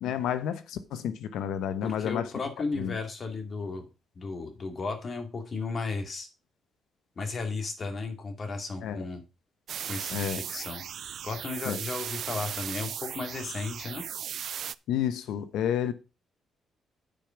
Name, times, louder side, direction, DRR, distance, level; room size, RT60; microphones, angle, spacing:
voice 1, 0.0-2.3 2.7-3.0 8.8-9.0 10.1-10.4 11.6-11.8 14.9-15.9, left 9 dB, 85° left, 1.0 m, -30 dB
voice 2, 1.8-3.8 4.2-6.3 7.2-9.2 9.9-10.8 11.2-14.0, left 3 dB, 40° left, 2.5 m, -34 dB
sound 1, 9.7-14.7, right 9 dB, 65° right, 0.4 m, -37 dB
9.2 x 5.3 x 5.8 m
cardioid pair, 90°, 0 cm